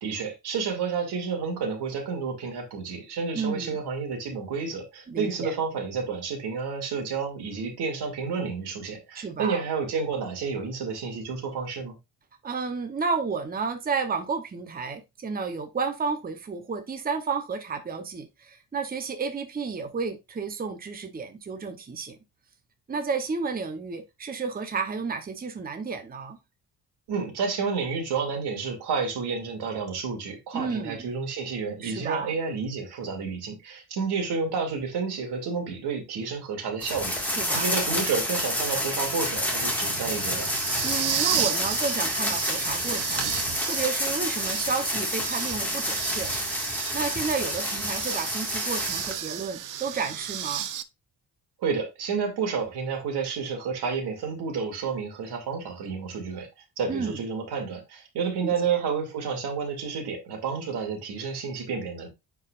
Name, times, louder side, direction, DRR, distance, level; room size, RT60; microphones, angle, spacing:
voice 1, 0.0-12.0 27.1-40.5 51.6-56.5 56.8-62.1, right 5 dB, 85° right, 2.7 m, -30 dB
voice 2, 3.3-3.8 5.1-5.5 9.1-9.6 12.4-22.2 22.9-26.4 30.5-31.1 31.8-32.3 37.3-37.7 40.8-43.3 43.6-46.3 46.9-50.7 56.9-57.2 58.4-58.5, right 5 dB, 25° right, 0.9 m, -31 dB
sound 1, 36.8-49.2, left 1 dB, 5° left, 1.9 m, -29 dB
sound 2, 37.7-50.8, right 10 dB, 55° right, 0.7 m, -34 dB
9.6 x 4.8 x 2.5 m
cardioid pair, 140°, 39 cm